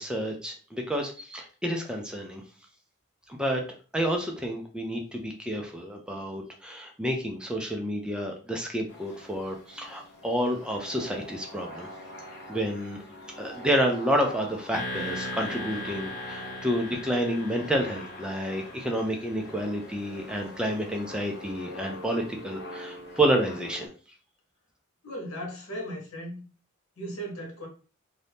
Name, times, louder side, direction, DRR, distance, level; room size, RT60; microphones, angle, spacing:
voice 1, 0.0-2.4 3.3-3.6 3.9-11.9 12.5-13.0 13.4-23.9, equal, 5° right, 0.4 m, -29 dB
sound 1, 8.9-23.9, left 1 dB, 50° left, 0.8 m, -44 dB
sound 2, 14.7-19.6, left 1 dB, 35° left, 1.2 m, -38 dB
voice 2, 25.0-26.4 27.0-27.7, equal, 85° left, 1.2 m, -37 dB
2.7 x 2.6 x 3.4 m
head